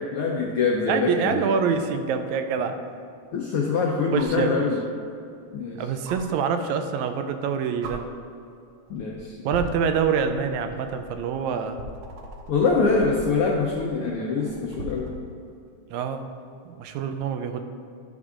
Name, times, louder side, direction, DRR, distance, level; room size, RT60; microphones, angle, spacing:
voice 1, 0.1-1.4 3.3-4.8 5.5-5.8 8.9-9.3 12.5-15.1, left 4 dB, 80° left, -1 dB, 1.2 m, -24 dB
voice 2, 0.8-2.8 4.1-4.7 5.8-8.1 9.5-11.8 15.9-16.2 16.8-17.6, right 6 dB, 80° right, 7 dB, 1.9 m, -26 dB
sound 1, 1.9-2.0 4.1-4.4 6.0-6.2 7.3-7.4 7.8-8.0 8.9-9.1 9.5-15.2 16.8-16.9, equal, 65° right, 1.6 m, -39 dB
12.0 x 7.1 x 2.5 m, 2.5 s
omnidirectional pair, 3.3 m